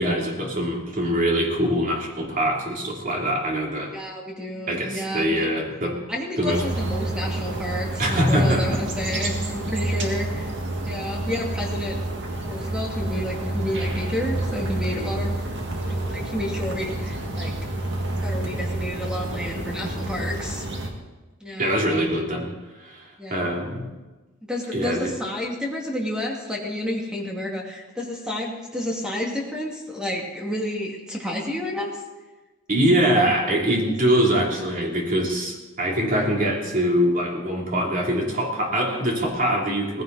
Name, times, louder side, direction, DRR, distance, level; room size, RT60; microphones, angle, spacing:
voice 1, 0.0-3.9 4.7-6.0 6.4-6.6 8.0-8.8 21.6-23.9 24.7-25.1 32.7-40.0, equal, 40° right, -1 dB, 3.1 m, -23 dB
voice 2, 3.9-5.5 6.1-10.5 10.8-12.0 12.5-15.3 15.8-17.5 18.2-20.7 21.4-21.7 23.2-23.5 24.4-32.0 33.8-33.9, left 1 dB, 5° right, -2 dB, 2.3 m, -30 dB
sound 1, 6.5-20.9, right 2 dB, 55° right, 2.0 m, -29 dB
18.0 x 16.0 x 4.1 m, 1.2 s
head